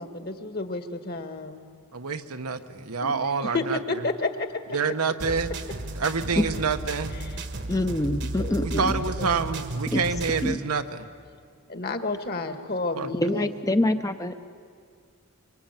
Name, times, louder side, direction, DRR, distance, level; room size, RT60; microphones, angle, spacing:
voice 1, 0.0-1.6 3.0-3.1 3.4-4.5 7.2-7.4 8.4-9.6 11.7-13.8, left 3 dB, 45° left, 8 dB, 1.7 m, -31 dB
voice 2, 1.9-3.8 4.7-5.5 5.9-7.2 8.6-11.1 13.0-13.1, right 5 dB, 85° right, 7 dB, 1.2 m, -27 dB
sound 1, 5.2-10.6, right 2 dB, 50° right, 1.3 m, -33 dB
voice 3, 7.7-8.9 9.9-10.0 10.4-10.6 13.2-14.3, left 1 dB, 15° left, 8 dB, 0.7 m, -25 dB
24.5 x 24.5 x 9.0 m, 2.2 s
head